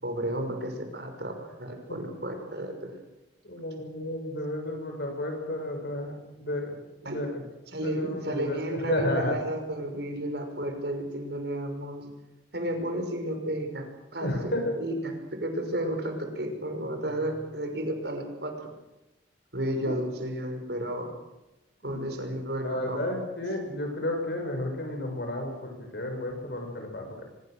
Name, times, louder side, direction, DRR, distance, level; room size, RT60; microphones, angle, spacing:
voice 1, 0.0-3.0 7.0-7.3 7.7-12.1 12.5-13.9 14.1-18.7 19.5-21.1 21.8-23.1, right 1 dB, 65° right, 5 dB, 5.9 m, -32 dB
voice 2, 3.4-6.8 7.0-7.4 7.7-9.4 14.2-14.8 19.8-19.9 21.8-22.3 22.6-27.2, left 1 dB, 65° left, 4 dB, 6.6 m, -32 dB
24.5 x 22.0 x 6.6 m, 0.98 s
head